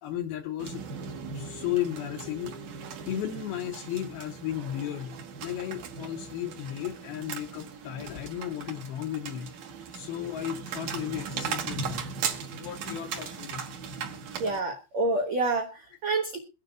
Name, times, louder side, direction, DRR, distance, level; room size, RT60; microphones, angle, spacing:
voice 1, 0.0-0.8 1.3-2.6 3.1-5.2 5.4-9.5 9.9-12.1 12.5-13.7, left 11 dB, 80° left, 6 dB, 2.3 m, -34 dB
sound 1, 0.6-14.6, right 6 dB, 60° right, 2.0 m, -38 dB
voice 2, 14.4-16.4, right 3 dB, 90° right, 3 dB, 1.5 m, -28 dB
23.5 x 9.4 x 2.4 m, 0.30 s
omnidirectional pair, 5.2 m